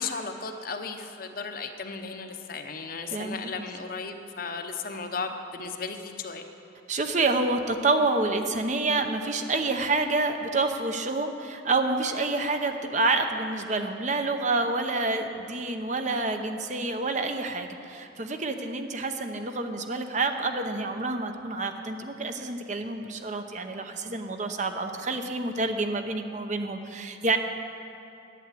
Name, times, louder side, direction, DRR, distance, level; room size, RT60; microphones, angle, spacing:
voice 1, 0.0-6.4, left 4 dB, 45° left, 6 dB, 0.8 m, -35 dB
voice 2, 3.1-3.6 6.9-27.4, right 3 dB, 35° right, 6 dB, 0.7 m, -28 dB
11.0 x 9.2 x 8.3 m, 2.8 s
head